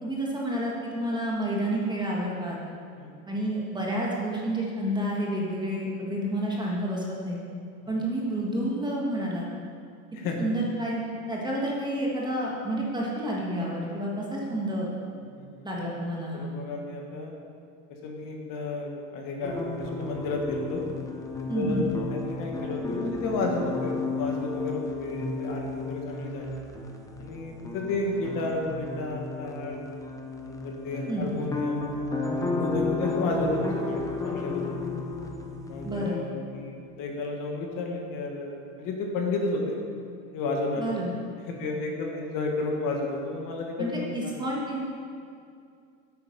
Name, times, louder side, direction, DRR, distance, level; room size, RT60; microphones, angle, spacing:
voice 1, 0.0-2.6 3.3-7.4 7.9-9.5 10.4-14.9 15.6-16.4 21.5-21.9 31.1-31.3 35.8-36.2 40.8-41.1 43.8-44.8, right 1 dB, 10° right, -4 dB, 1.5 m, -29 dB
voice 2, 10.1-10.4 15.3-15.7 16.3-17.3 17.9-20.8 21.4-21.8 22.1-26.6 27.2-29.8 30.4-31.9 32.3-35.0 35.7-39.8 40.3-40.9 41.4-43.9 44.2-44.4, left 2 dB, 45° left, 1 dB, 1.6 m, -32 dB
sound 1, 19.4-36.2, left 3 dB, 5° left, 0.6 m, -33 dB
9.9 x 8.4 x 5.3 m, 2.3 s
supercardioid pair, 140°, 46 cm